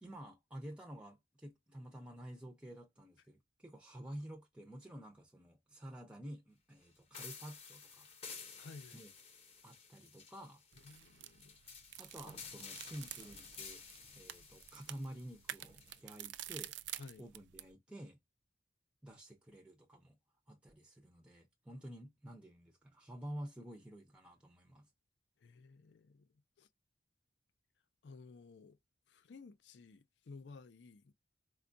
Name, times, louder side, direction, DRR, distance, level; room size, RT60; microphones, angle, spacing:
voice 1, 0.0-8.1 8.9-9.1 9.6-10.6 12.0-13.8 14.1-16.8 17.2-18.2 19.0-20.2 20.5-24.9, right 1 dB, 5° right, 0.5 m, -50 dB
sound 1, 7.1-16.0, left 5 dB, 30° left, 0.7 m, -53 dB
voice 2, 8.6-9.1 10.8-11.6 17.0-17.3 25.4-26.7 28.0-28.8 29.1-31.1, left 4 dB, 65° left, 0.4 m, -55 dB
sound 2, 10.7-17.7, right 12 dB, 70° right, 0.3 m, -49 dB
4.4 x 2.2 x 2.5 m
head